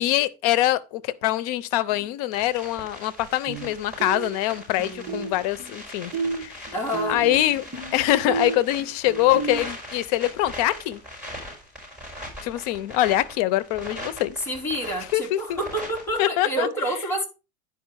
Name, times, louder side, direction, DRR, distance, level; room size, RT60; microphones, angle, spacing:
voice 1, 0.0-6.1 6.4-6.6 7.1-7.6 7.9-11.0 12.4-14.4 15.1-15.6 16.2-16.7, left 15 dB, 75° left, 0.8 m, -24 dB
sound 1, 1.9-2.1 3.5-3.7 4.0-5.8 6.1-9.6, right 4 dB, 30° right, 1.9 m, -32 dB
sound 2, 2.3-16.3, equal, 5° right, 5.2 m, -41 dB
voice 2, 6.7-7.2 14.5-15.6 15.9-17.3, equal, 15° left, 3.1 m, -28 dB
10.0 x 4.9 x 4.7 m
cardioid pair, 150°, 19 cm